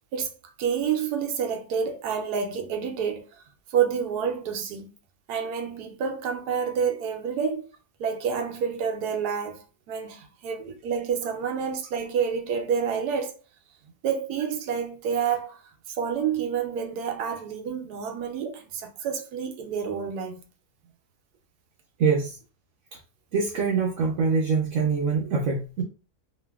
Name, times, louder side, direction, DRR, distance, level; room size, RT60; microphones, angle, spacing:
voice 1, 0.6-3.4 3.7-4.9 5.3-7.7 8.0-13.3 14.0-20.4, right 7 dB, 85° right, 1.1 m, -28 dB
voice 2, 22.0-22.4 23.3-25.8, right 5 dB, 65° right, 0.9 m, -24 dB
2.8 x 2.6 x 2.2 m
omnidirectional pair, 1.7 m